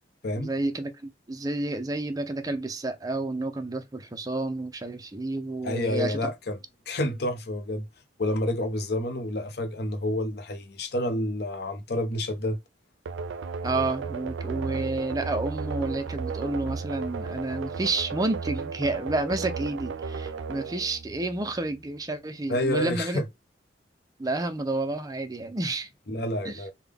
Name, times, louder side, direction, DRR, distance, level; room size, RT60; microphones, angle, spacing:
voice 1, 0.4-6.3 13.6-23.2 24.2-25.9 26.4-26.6, right 2 dB, 20° right, 0.4 m, -30 dB
voice 2, 5.6-6.6 6.9-7.9 8.2-12.6 22.5-23.2 26.1-26.7, left 1 dB, 60° left, 0.7 m, -29 dB
sound 1, 13.1-21.7, right 5 dB, 90° right, 0.4 m, -34 dB
3.5 x 2.2 x 3.4 m
head